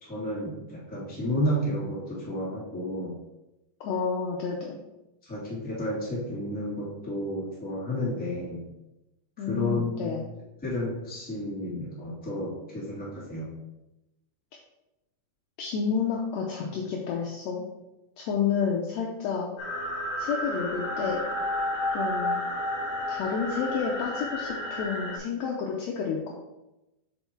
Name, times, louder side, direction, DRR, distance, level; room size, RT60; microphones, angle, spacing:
voice 1, 0.0-3.2 5.2-8.6 9.4-10.2 10.6-13.5, left 1 dB, 5° left, -8 dB, 1.6 m, -31 dB
voice 2, 3.8-4.8 9.4-10.3 15.6-17.6 18.2-19.5 20.2-21.2 21.9-22.4 23.1-26.3, left 6 dB, 75° left, -1 dB, 1.7 m, -30 dB
sound 1, 19.6-25.2, left 1 dB, 50° left, 2.2 m, -31 dB
5.6 x 4.5 x 4.5 m, 0.96 s
omnidirectional pair, 3.6 m